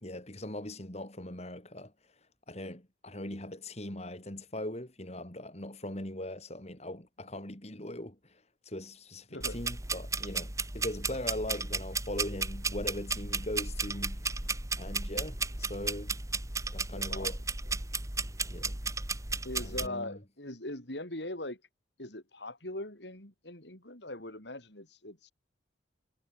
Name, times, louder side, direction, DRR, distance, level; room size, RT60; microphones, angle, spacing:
voice 1, 0.0-1.9 2.5-14.5 14.8-16.2 16.7-17.4 18.5-18.8 19.6-20.2, left 1 dB, 35° left, 4.4 m, -40 dB
voice 2, 9.3-9.6 16.9-17.3 19.4-21.6 22.0-25.3, left 1 dB, 70° left, 6.6 m, -41 dB
sound 1, 9.4-19.9, right 4 dB, 15° right, 1.7 m, -34 dB
head